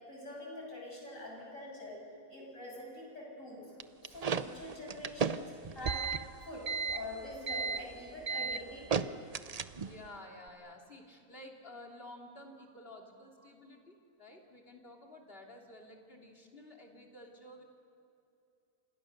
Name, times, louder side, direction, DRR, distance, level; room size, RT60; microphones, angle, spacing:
voice 1, 0.0-2.0 2.3-9.3, left 1 dB, 60° left, -2 dB, 7.8 m, -45 dB
sound 1, 3.8-10.1, right 5 dB, 45° right, 0.5 m, -34 dB
voice 2, 9.8-17.6, left 1 dB, 40° left, 0 dB, 3.4 m, -52 dB
29.0 x 27.5 x 6.7 m, 2.7 s
omnidirectional pair, 1.5 m